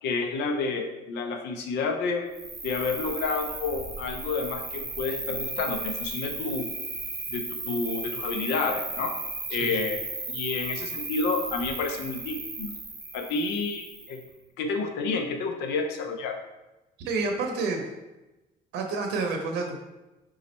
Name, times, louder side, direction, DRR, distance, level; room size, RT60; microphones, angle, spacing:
voice 1, 0.0-2.3 2.6-6.6 7.3-9.1 9.5-10.0 10.3-12.7 13.1-14.2 14.6-16.4, left 4 dB, 85° left, 5 dB, 0.6 m, -30 dB
Cricket, 2.3-14.3, right 2 dB, 15° right, 0.7 m, -35 dB
voice 2, 17.0-17.9 18.7-19.8, right 3 dB, 85° right, 2 dB, 0.7 m, -29 dB
5.1 x 2.4 x 4.2 m, 1.0 s
cardioid pair, 110°, 17 cm